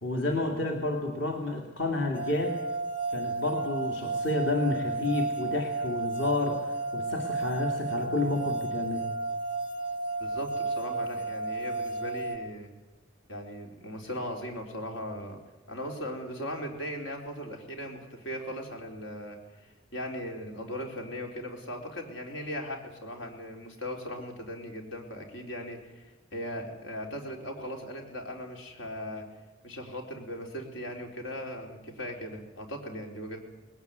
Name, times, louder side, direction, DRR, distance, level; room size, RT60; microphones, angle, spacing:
voice 1, 0.0-2.6 3.1-9.1, left 2 dB, 60° left, 2 dB, 2.4 m, -30 dB
sound 1, 2.1-12.4, right 3 dB, 40° left, 1.5 m, -32 dB
voice 2, 10.2-12.7 13.3-15.4 15.7-29.3 29.6-33.4, equal, 90° left, 2 dB, 4.2 m, -38 dB
20.0 x 17.5 x 9.3 m, 1.0 s
head